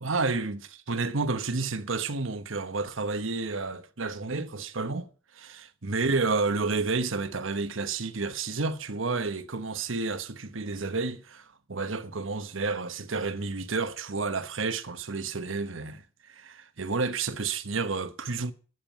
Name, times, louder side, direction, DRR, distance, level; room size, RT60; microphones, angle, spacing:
voice 1, 0.0-5.1 5.3-18.5, right 3 dB, 75° right, 1.1 m, -30 dB
12.0 x 7.4 x 9.2 m
head